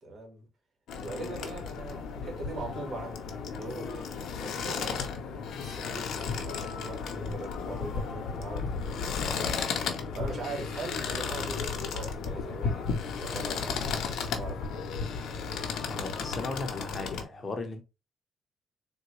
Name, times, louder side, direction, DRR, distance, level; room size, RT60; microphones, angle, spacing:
voice 1, 0.0-0.5 1.0-4.1 4.3-9.0 10.1-15.2, right 3 dB, 50° right, 1.4 m, -42 dB
sound 1, 0.9-17.2, left 5 dB, 75° left, 0.7 m, -34 dB
voice 2, 15.8-17.8, left 3 dB, 35° left, 0.8 m, -36 dB
3.8 x 2.2 x 3.0 m
cardioid pair, 90°, 0 cm